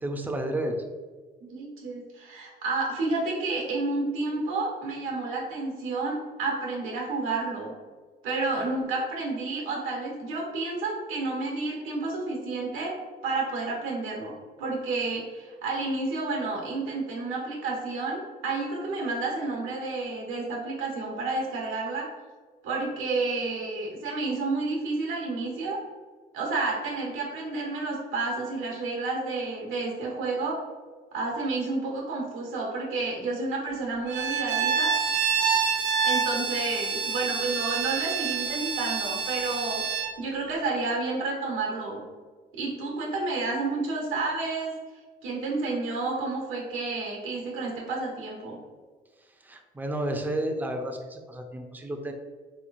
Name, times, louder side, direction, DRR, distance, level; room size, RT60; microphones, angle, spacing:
voice 1, 0.0-0.8 49.4-52.1, right 1 dB, 10° right, 3 dB, 0.5 m, -31 dB
voice 2, 1.4-7.7 8.2-12.9 13.2-22.1 22.6-25.8 26.3-30.6 31.1-34.9 36.0-42.0 42.5-44.7 45.2-48.6, right 3 dB, 80° right, -1 dB, 1.1 m, -30 dB
Bowed string instrument, 34.1-40.2, right 6 dB, 60° right, 0.4 m, -27 dB
3.8 x 3.1 x 2.4 m, 1.4 s
supercardioid pair, 75°, 20 cm